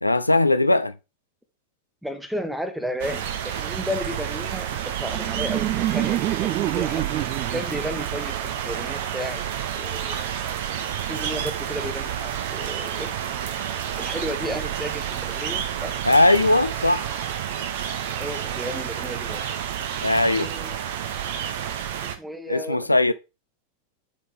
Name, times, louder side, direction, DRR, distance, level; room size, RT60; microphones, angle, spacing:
voice 1, 0.0-0.9 16.0-17.1 20.0-20.5 22.5-23.1, left 2 dB, 85° left, 0.4 m, -19 dB
voice 2, 2.0-7.1 7.5-9.4 9.7-10.3 11.1-13.2 14.0-16.0 18.2-19.5 20.3-20.8 22.0-22.9, equal, ahead, 1.2 m, -33 dB
sound 1, 3.0-22.2, right 9 dB, 55° right, 0.8 m, -30 dB
Laughter, 4.6-9.6, right 15 dB, 40° right, 0.3 m, -29 dB
9.7 x 3.9 x 3.5 m
figure-of-eight pair, 90°, 0 cm